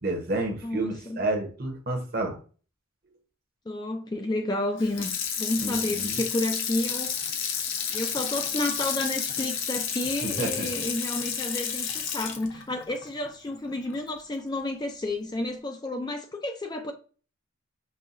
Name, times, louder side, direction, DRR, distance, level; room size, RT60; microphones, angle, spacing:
voice 1, 0.0-2.4 5.6-6.1 10.2-10.8, right 2 dB, 45° right, 0.9 m, -30 dB
voice 2, 0.6-1.2 3.7-5.1 5.4-7.4 7.9-16.9, left 2 dB, 20° left, 0.3 m, -31 dB
Water tap faucet / Sink (filling or washing), 4.8-14.0 14.4-14.5, left 7 dB, 60° left, 0.6 m, -31 dB
5.5 x 2.2 x 2.5 m
head